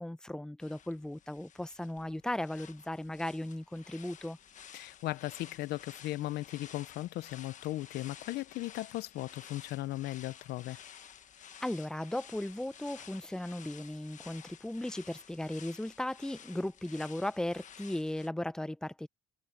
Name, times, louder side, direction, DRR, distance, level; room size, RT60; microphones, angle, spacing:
voice 1, 0.0-4.4 11.6-19.1, left 1 dB, 5° left, 0.7 m, -36 dB
sound 1, 0.6-18.3, left 9 dB, 45° left, 1.4 m, -53 dB
voice 2, 4.7-10.8, left 17 dB, 75° left, 0.6 m, -37 dB
cardioid pair, 110°, 17 cm